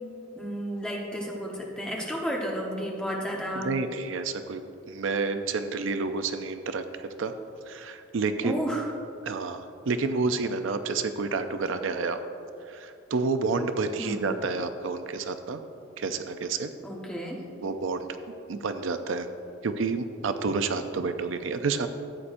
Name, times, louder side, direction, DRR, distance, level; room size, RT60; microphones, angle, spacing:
voice 1, 0.3-3.7 8.4-8.9 14.0-14.3 16.8-17.4, equal, 5° left, -3 dB, 1.1 m, -32 dB
voice 2, 3.6-6.8 7.2-7.3 7.7-8.7 9.2-12.2 12.7-15.6 16.0-16.7 17.6-18.1 18.5-19.3 19.6-21.9, right 4 dB, 75° right, 9 dB, 0.5 m, -29 dB
14.0 x 8.5 x 2.6 m, 2.6 s
head